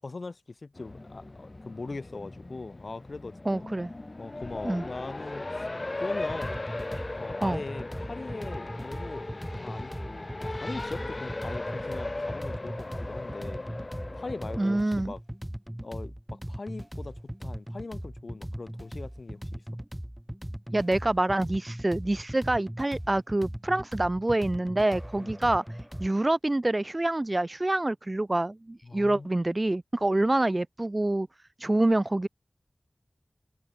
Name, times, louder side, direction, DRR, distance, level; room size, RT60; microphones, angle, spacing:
voice 1, 0.0-3.7 4.2-5.7 6.0-6.6 7.2-9.3 9.6-13.6 14.1-15.2 15.8-19.8 25.2-25.4 28.8-29.3, left 3 dB, 70° left, 5.8 m, -41 dB
Race car auto racing, 0.8-14.8, left 2 dB, 45° left, 0.8 m, -38 dB
voice 2, 3.5-3.9 4.6-4.8 7.4-7.6 14.6-15.1 20.7-31.3 31.6-32.3, right 2 dB, 35° right, 0.4 m, -26 dB
sound 1, 6.2-26.1, equal, 10° right, 1.7 m, -39 dB
wide cardioid pair, 50°, 0 cm